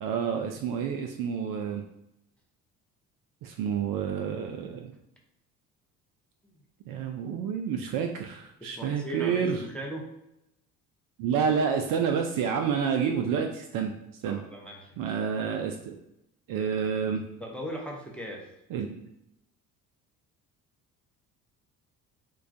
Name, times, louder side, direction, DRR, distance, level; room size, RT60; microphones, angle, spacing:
voice 1, 0.0-1.8 3.4-4.9 6.9-9.6 11.2-13.9 14.2-14.4 15.0-16.0 16.5-17.2 18.7-18.9, right 7 dB, 50° right, 4 dB, 0.4 m, -29 dB
voice 2, 8.6-10.1 14.2-15.2 17.4-18.5, equal, ahead, -1 dB, 0.7 m, -39 dB
3.0 x 2.2 x 2.5 m, 0.84 s
hypercardioid pair, 55°, 44 cm